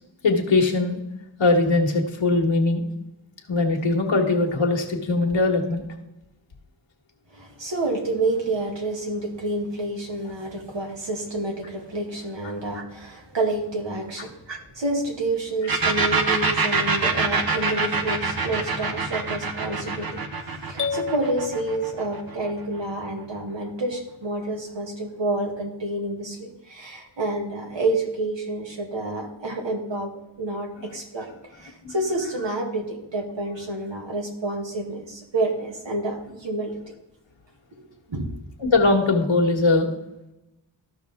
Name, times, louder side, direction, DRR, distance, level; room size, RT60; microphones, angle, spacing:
voice 1, 0.2-1.0 1.4-2.9 3.5-5.8 31.8-31.9 38.6-39.9, left 3 dB, 80° left, 1 dB, 1.5 m, -21 dB
voice 2, 7.3-20.2 20.7-30.1 30.4-36.8 37.8-38.3, right 2 dB, 70° right, 1 dB, 2.2 m, -29 dB
sound 1, 15.7-23.2, right 4 dB, 50° right, 1.2 m, -25 dB
sound 2, 20.8-22.7, left 6 dB, 25° left, 0.7 m, -32 dB
13.5 x 5.8 x 3.5 m, 0.93 s
wide cardioid pair, 80°, 46 cm